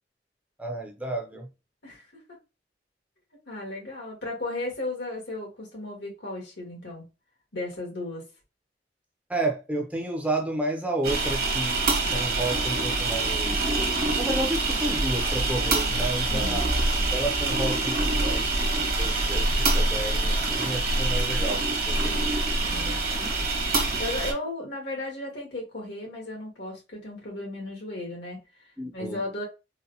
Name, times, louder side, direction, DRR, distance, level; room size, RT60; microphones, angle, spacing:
voice 1, 0.6-1.5 9.3-13.7 14.2-16.8 17.1-18.6 19.0-22.1 28.8-29.2, right 1 dB, 10° right, 0.6 m, -31 dB
voice 2, 1.8-2.2 3.5-7.0 7.5-8.2 16.3-16.6 22.6-23.3 23.7-29.4, left 2 dB, 80° left, 1.7 m, -35 dB
sound 1, 11.0-24.3, right 2 dB, 60° right, 1.1 m, -25 dB
3.9 x 2.2 x 2.7 m
head